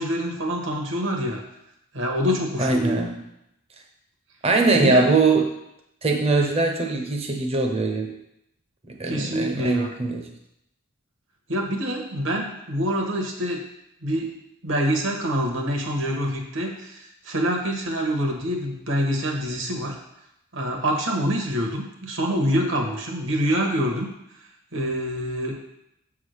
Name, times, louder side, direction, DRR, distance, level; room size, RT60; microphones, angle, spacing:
voice 1, 0.0-1.4 1.9-3.0 4.7-5.1 9.1-9.9 11.5-13.6 14.0-14.3 14.6-20.0 20.5-24.1 24.7-25.5, equal, 60° right, 1 dB, 1.4 m, -26 dB
voice 2, 2.6-3.2 4.4-5.5 6.0-8.2 8.9-10.3, right 3 dB, 30° right, 2 dB, 0.8 m, -22 dB
7.2 x 3.7 x 6.4 m, 0.82 s
head